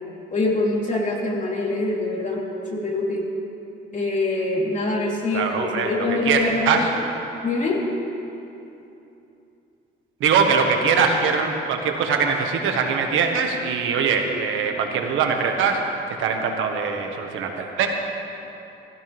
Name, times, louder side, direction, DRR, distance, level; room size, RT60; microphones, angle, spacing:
voice 1, 0.3-3.3 3.9-6.9 7.4-7.8, left 2 dB, 40° left, -3 dB, 3.6 m, -24 dB
voice 2, 5.3-6.8 10.2-17.9, right 5 dB, 85° right, 3 dB, 1.6 m, -22 dB
19.0 x 16.0 x 3.5 m, 2.9 s
cardioid pair, 90°, 20 cm